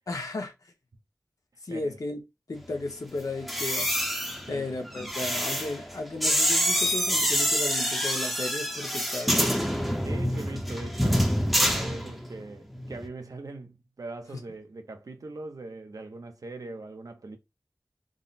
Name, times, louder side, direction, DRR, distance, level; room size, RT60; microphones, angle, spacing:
voice 1, 0.1-0.5 1.6-2.2 2.5-3.9 4.5-9.3, left 2 dB, 80° left, 0.9 m, -34 dB
sound 1, 3.4-12.5 12.7-13.1, equal, ahead, 0.7 m, -27 dB
voice 2, 4.5-5.3 10.0-11.3 11.7-17.4, right 2 dB, 90° right, 0.7 m, -41 dB
3.7 x 2.1 x 4.0 m
wide cardioid pair, 65°, 6 cm